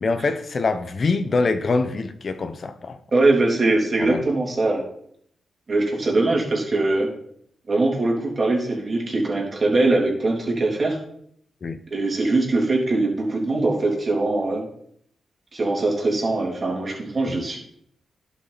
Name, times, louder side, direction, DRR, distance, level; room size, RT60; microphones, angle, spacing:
voice 1, 0.0-3.0 4.0-4.2 11.6-11.8 17.2-17.4, left 3 dB, 50° left, 10 dB, 0.9 m, -24 dB
voice 2, 3.1-4.8 5.7-7.1 7.7-11.0 11.9-14.7 15.5-17.6, right 2 dB, 40° right, -2 dB, 3.2 m, -22 dB
11.0 x 6.1 x 4.1 m, 0.68 s
cardioid pair, 80°, 0 cm